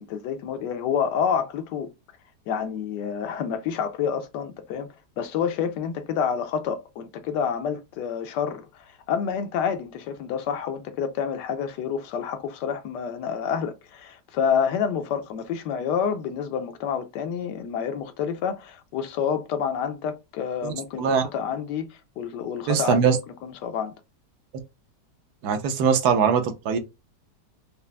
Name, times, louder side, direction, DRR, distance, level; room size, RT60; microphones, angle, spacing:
voice 1, 0.0-1.9 2.5-4.9 5.2-23.9, left 7 dB, 85° left, 1.3 m, -28 dB
voice 2, 22.7-23.2 25.4-26.8, right 7 dB, 70° right, 1.2 m, -21 dB
5.3 x 2.4 x 2.2 m
omnidirectional pair, 1.8 m